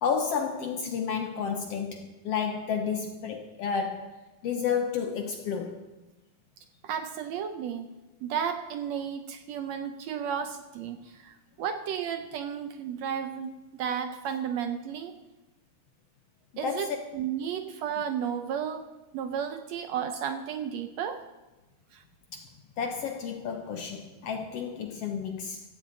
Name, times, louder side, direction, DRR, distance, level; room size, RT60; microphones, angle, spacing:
voice 1, 0.0-5.9 16.6-17.0 22.3-22.5 22.8-25.6, left 6 dB, 65° left, 1.6 m, -31 dB
voice 2, 6.8-7.9 8.2-15.1 16.6-18.9 19.1-21.2 21.9-22.0, right 8 dB, 70° right, 1.8 m, -33 dB
16.5 x 15.0 x 4.1 m
omnidirectional pair, 3.6 m